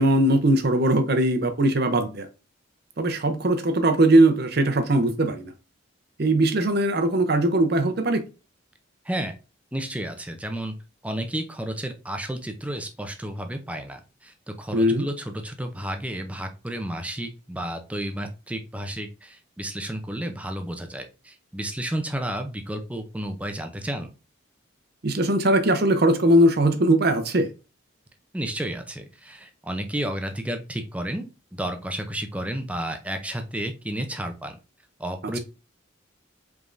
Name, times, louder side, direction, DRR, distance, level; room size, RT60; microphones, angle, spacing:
voice 1, 0.0-2.3 3.0-5.5 6.2-8.2 14.7-15.1 25.0-27.5, right 1 dB, 55° right, 0.7 m, -20 dB
voice 2, 9.7-10.7 11.0-24.1 28.3-34.6 35.0-35.4, right 1 dB, 5° right, 0.5 m, -32 dB
5.0 x 3.5 x 2.6 m
head